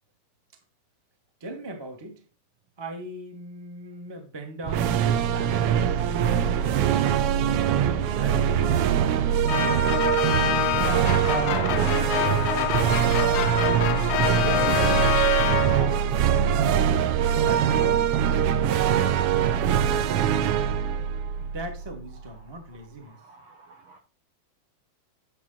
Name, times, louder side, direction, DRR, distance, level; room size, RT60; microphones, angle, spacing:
voice 1, 1.4-2.2 2.8-7.3 7.6-9.0 21.4-23.2, right 1 dB, 20° right, 0.6 m, -39 dB
sound 1, 4.6-22.1, right 9 dB, 85° right, 1.3 m, -23 dB
sound 2, 9.5-16.0, left 15 dB, 90° left, 2.0 m, -27 dB
voice 2, 10.8-13.5 14.1-14.8 15.7-15.9 16.2-16.9 17.3-21.5 22.2-24.0, right 6 dB, 70° right, 1.3 m, -38 dB
10.5 x 5.7 x 3.9 m
omnidirectional pair, 3.4 m